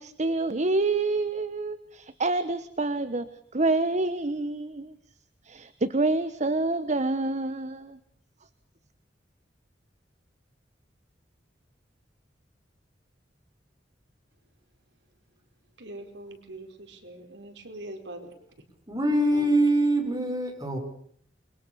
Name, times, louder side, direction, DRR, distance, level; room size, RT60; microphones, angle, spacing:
voice 1, 0.0-5.0 5.4-8.0, right 2 dB, 40° right, 12 dB, 1.2 m, -27 dB
voice 2, 15.8-18.3 19.3-19.5, right 1 dB, 80° right, 5 dB, 4.8 m, -42 dB
voice 3, 18.9-20.8, right 1 dB, 20° right, 3 dB, 6.4 m, -24 dB
28.5 x 23.5 x 7.0 m, 0.62 s
head